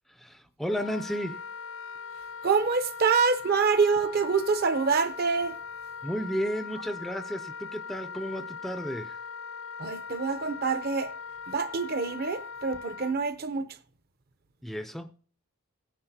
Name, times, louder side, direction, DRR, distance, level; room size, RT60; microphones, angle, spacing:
voice 1, 0.1-1.4 6.0-9.2 14.6-15.1, equal, ahead, 0.4 m, -33 dB
Wind instrument woodwind instrument, 0.7-13.2, left 5 dB, 65° left, 0.5 m, -40 dB
voice 2, 2.4-5.6 9.8-11.1 11.5-13.8, right 5 dB, 45° right, 0.6 m, -26 dB
16.5 x 9.8 x 2.7 m
head